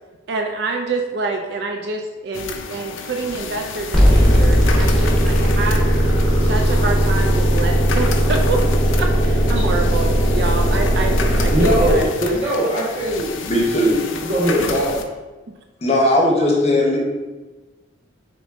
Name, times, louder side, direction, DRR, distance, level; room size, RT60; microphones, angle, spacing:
voice 1, 0.3-5.8 6.3-8.6 9.0-12.5, right 4 dB, 55° right, 3 dB, 0.3 m, -27 dB
sound 1, 2.3-15.0, left 5 dB, 75° left, 0.4 m, -31 dB
sound 2, 3.9-12.0, equal, 5° left, 0.9 m, -17 dB
voice 2, 11.4-13.3 14.1-14.9, equal, 35° right, -5 dB, 1.2 m, -20 dB
voice 3, 13.4-14.1 15.8-17.0, left 1 dB, 30° left, -2 dB, 0.8 m, -17 dB
3.7 x 3.6 x 3.5 m, 1.2 s
head